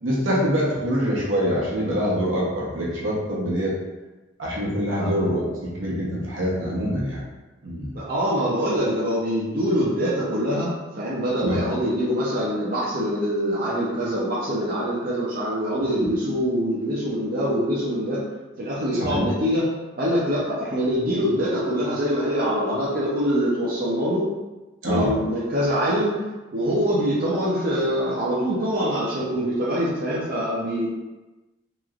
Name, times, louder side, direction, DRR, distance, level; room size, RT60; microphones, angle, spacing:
voice 1, 0.0-3.8 4.4-7.2 7.6-7.9 11.4-11.6 16.0-16.1 18.9-19.2 24.8-25.1, equal, 80° right, -5 dB, 0.9 m, -25 dB
voice 2, 7.9-18.2 18.6-19.6 20.0-24.3 24.8-26.1 26.5-30.9, equal, 45° right, -7 dB, 0.6 m, -24 dB
3.0 x 2.9 x 2.4 m, 1.1 s
head